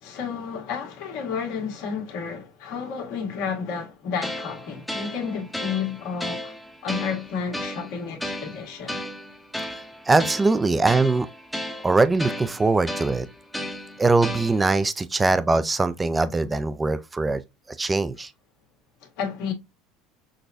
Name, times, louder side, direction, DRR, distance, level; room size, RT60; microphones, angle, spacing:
voice 1, 0.0-6.5 6.8-9.0 19.0-19.5, left 6 dB, 65° left, 1.6 m, -31 dB
sound 1, 4.2-14.8, left 1 dB, 5° left, 0.8 m, -34 dB
voice 2, 10.1-11.3 11.8-13.3 14.0-17.4 17.8-18.3, right 3 dB, 15° right, 0.4 m, -21 dB
6.1 x 2.2 x 2.6 m
supercardioid pair, 105°, 0 cm